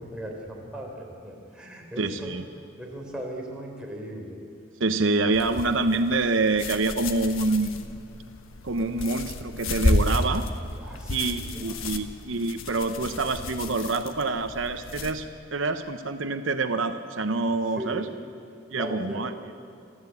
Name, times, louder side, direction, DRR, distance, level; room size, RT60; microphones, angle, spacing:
voice 1, 0.0-2.3 2.8-4.4 10.8-12.0 17.8-18.0 18.7-19.2, right 1 dB, 5° right, -2 dB, 3.9 m, -38 dB
voice 2, 2.0-2.4 4.8-7.8 8.6-10.5 11.1-15.3 15.5-18.0 18.7-19.3, right 3 dB, 70° right, 8 dB, 0.9 m, -26 dB
sound 1, 5.3-15.1, left 2 dB, 85° left, 1.3 m, -31 dB
27.0 x 14.0 x 8.5 m, 2.4 s
head